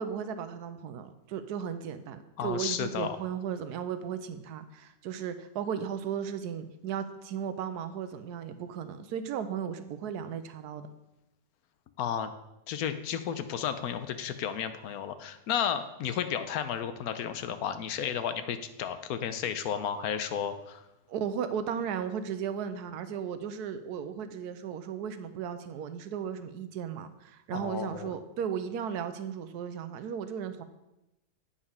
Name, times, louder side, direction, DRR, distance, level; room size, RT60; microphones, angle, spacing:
voice 1, 0.0-10.9 21.1-30.6, right 8 dB, 85° right, 11 dB, 1.2 m, -35 dB
voice 2, 2.4-3.2 12.0-12.3 12.7-20.8 27.5-28.1, left 8 dB, 75° left, 10 dB, 1.1 m, -33 dB
8.5 x 4.9 x 5.5 m, 0.93 s
omnidirectional pair, 1.7 m